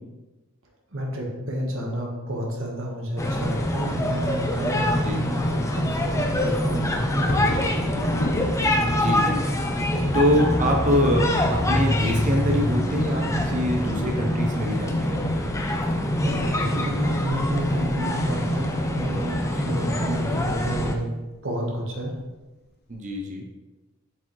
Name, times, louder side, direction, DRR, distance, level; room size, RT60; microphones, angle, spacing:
voice 1, 0.9-7.9 16.2-21.1 21.4-22.2, right 1 dB, 60° right, 0 dB, 1.3 m, -30 dB
sound 1, 3.2-20.9, left 1 dB, 15° left, 0.5 m, -25 dB
Bird vocalization bird call bird song / Wind / Thunder, 4.8-20.7 21.4-21.5 21.8-22.2 22.6-23.2, left 1 dB, 45° left, 0.8 m, -39 dB
voice 2, 8.8-9.4 10.1-15.2 19.5-19.7 22.9-23.4, equal, 35° right, 1 dB, 0.7 m, -25 dB
7.3 x 4.8 x 3.1 m, 1.1 s
head